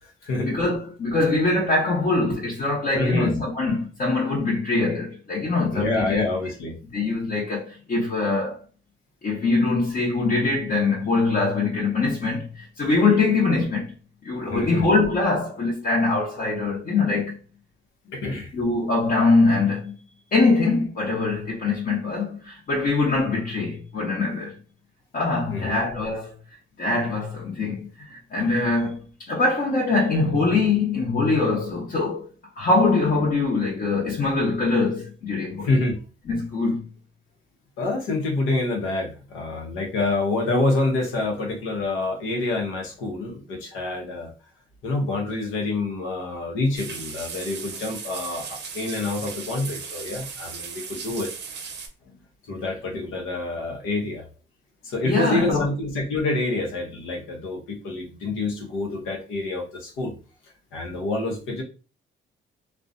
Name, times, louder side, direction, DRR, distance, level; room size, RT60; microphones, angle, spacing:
voice 1, 0.4-6.2 6.9-8.6 9.2-13.9 14.2-17.4 18.5-19.9 20.3-24.5 25.1-26.3 26.8-32.3 32.6-35.7 36.3-36.8 55.0-55.6, left 3 dB, 45° left, 0.9 m, -23 dB
voice 2, 2.9-3.4 5.7-6.7 14.5-14.9 18.1-18.5 25.5-25.8 35.6-36.0 37.8-44.3 44.8-51.3 52.0-52.2 52.4-54.2 54.8-60.1 60.7-61.6, left 2 dB, 90° left, 0.8 m, -27 dB
sound 1, 46.7-51.9, right 5 dB, 60° right, 0.6 m, -36 dB
2.4 x 2.1 x 2.5 m
cardioid pair, 90°, 20 cm